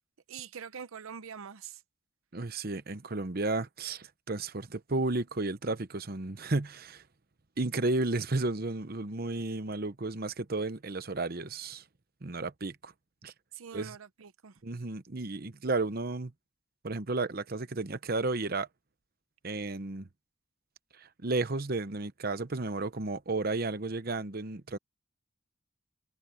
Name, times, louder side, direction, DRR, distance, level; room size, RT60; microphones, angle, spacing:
voice 1, 0.3-1.8 13.5-14.6, right 7 dB, 85° right, 0.7 m, -44 dB
voice 2, 2.3-7.0 7.6-11.8 12.2-12.9 13.2-13.3 13.7-14.0 14.6-16.3 16.8-18.7 19.4-20.1 21.0-24.8, right 2 dB, 45° right, 0.9 m, -33 dB
head